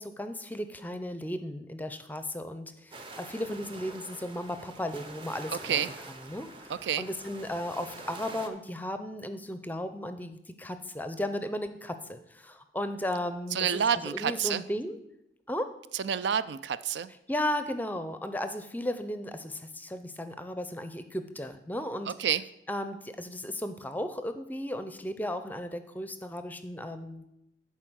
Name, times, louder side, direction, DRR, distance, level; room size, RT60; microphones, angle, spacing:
voice 1, 0.0-5.8 6.2-13.7 13.9-15.0 15.5-15.7 17.3-22.1 22.7-27.3, left 1 dB, 10° left, 10 dB, 0.5 m, -35 dB
sound 1, 2.9-8.5, right 2 dB, 30° right, 0.7 m, -45 dB
voice 2, 6.7-7.0 13.5-14.6 15.9-17.1 22.2-22.4, right 8 dB, 75° right, 15 dB, 0.4 m, -28 dB
11.0 x 4.6 x 6.2 m, 0.86 s
head